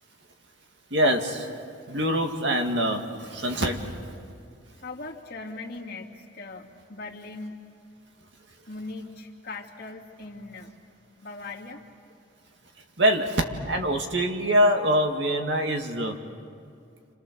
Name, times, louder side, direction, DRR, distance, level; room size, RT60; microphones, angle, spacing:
voice 1, 0.9-1.5 1.9-3.9 13.0-16.2, equal, 65° right, 3 dB, 2.2 m, -24 dB
voice 2, 4.8-7.6 8.7-10.7 11.2-11.8, left 3 dB, 50° left, -2 dB, 2.6 m, -39 dB
29.0 x 27.0 x 6.9 m, 2.3 s
head